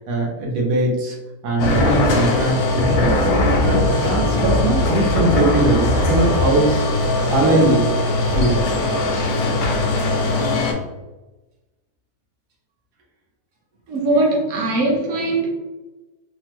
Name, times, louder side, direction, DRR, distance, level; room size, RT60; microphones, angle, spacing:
voice 1, 0.1-1.2 1.4-3.2 3.6-6.7 7.3-7.9 8.3-8.7 14.1-14.2, right 2 dB, 80° right, -2 dB, 1.3 m, -20 dB
sound 1, 1.6-10.7, left 2 dB, 75° left, 1.1 m, -19 dB
voice 2, 13.9-15.5, right 2 dB, 55° right, -1 dB, 1.0 m, -20 dB
3.4 x 2.0 x 2.9 m, 1.1 s
omnidirectional pair, 1.7 m